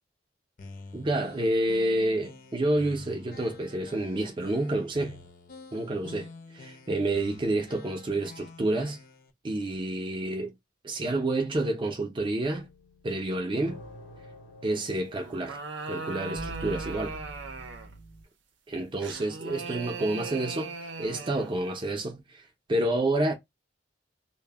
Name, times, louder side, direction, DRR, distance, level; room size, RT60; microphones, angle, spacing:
sound 1, 0.6-9.3, left 3 dB, 45° left, 0.5 m, -48 dB
voice 1, 0.9-5.2 5.7-9.0 9.4-10.5 10.8-12.7 13.0-13.8 14.6-15.6 15.9-17.2 18.7-20.7 21.0-23.3, right 1 dB, 25° right, 0.5 m, -29 dB
sound 2, 12.4-18.2, right 1 dB, 85° left, 0.8 m, -45 dB
sound 3, 15.2-18.0 19.0-21.6, right 4 dB, 80° right, 0.5 m, -38 dB
2.0 x 2.0 x 3.3 m
head